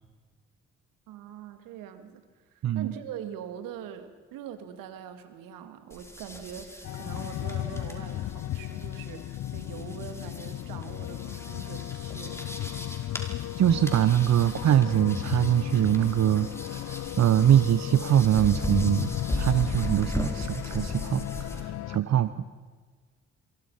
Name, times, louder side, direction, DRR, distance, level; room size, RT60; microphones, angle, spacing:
voice 1, 1.1-2.2 2.5-12.5, right 9 dB, 70° right, 9 dB, 2.4 m, -43 dB
sound 1, 5.9-21.6, left 1 dB, 10° left, 5.1 m, -38 dB
sound 2, 6.8-22.0, left 13 dB, 55° left, 0.7 m, -35 dB
voice 2, 13.6-22.5, right 11 dB, 50° right, 13 dB, 1.0 m, -23 dB
27.5 x 23.5 x 5.7 m, 1.5 s
hypercardioid pair, 45°, 34 cm